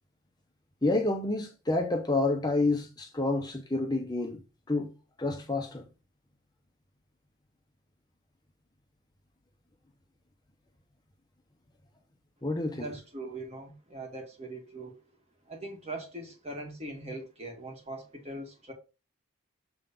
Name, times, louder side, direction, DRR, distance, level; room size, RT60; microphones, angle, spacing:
voice 1, 0.8-4.4 4.7-4.9 5.2-5.8 12.4-12.9, left 2 dB, 20° left, 0.7 m, -29 dB
voice 2, 12.7-15.0 15.5-18.7, right 2 dB, 30° right, 1.9 m, -41 dB
6.9 x 3.7 x 5.1 m
head